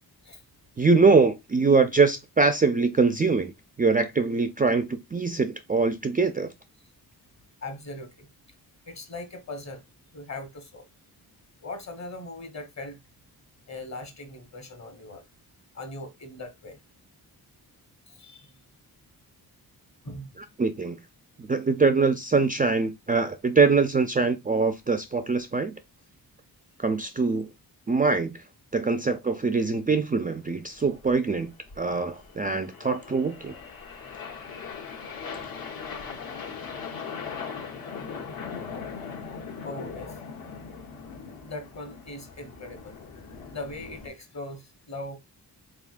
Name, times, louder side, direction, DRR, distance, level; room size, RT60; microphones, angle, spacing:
voice 1, 0.8-3.5 3.8-6.5 20.6-21.0 21.4-25.7 26.8-27.5 27.9-28.3 28.7-31.5 31.8-33.5, right 4 dB, 25° right, 0.4 m, -23 dB
voice 2, 7.6-8.3 8.8-9.8 10.1-10.9 11.6-13.0 13.7-15.3 15.7-16.8 18.1-18.5 20.0-20.4 39.6-40.2 41.4-45.2, left 2 dB, 45° left, 1.3 m, -40 dB
sound 1, 30.8-44.1, left 5 dB, 65° left, 1.5 m, -40 dB
4.0 x 3.6 x 2.5 m
wide cardioid pair, 130°, 38 cm